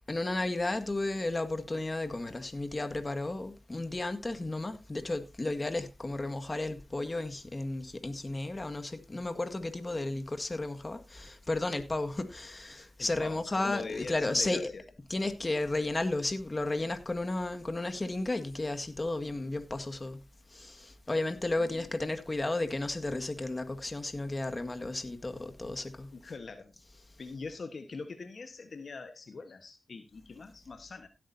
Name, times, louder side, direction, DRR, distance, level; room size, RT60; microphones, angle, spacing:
voice 1, 0.1-14.7 15.1-20.2 20.5-26.1, left 2 dB, 35° left, 1.8 m, -33 dB
voice 2, 13.0-14.8 21.6-22.0 26.1-26.7 27.2-31.1, left 4 dB, 65° left, 1.4 m, -43 dB
16.5 x 8.7 x 2.8 m
cardioid pair, 45°, 0 cm